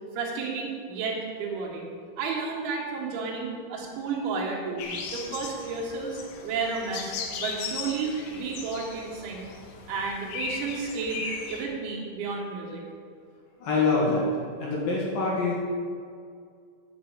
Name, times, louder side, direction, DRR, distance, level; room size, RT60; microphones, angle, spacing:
voice 1, 0.1-4.9 5.1-9.5 9.9-11.2 11.5-12.8, right 4 dB, 70° right, -3 dB, 4.1 m, -32 dB
sound 1, 4.8-11.7, left 5 dB, 75° left, 3.6 m, -37 dB
voice 2, 13.6-14.3 14.6-15.5, left 3 dB, 55° left, -5 dB, 3.1 m, -25 dB
9.2 x 6.7 x 8.7 m, 2.2 s
omnidirectional pair, 5.9 m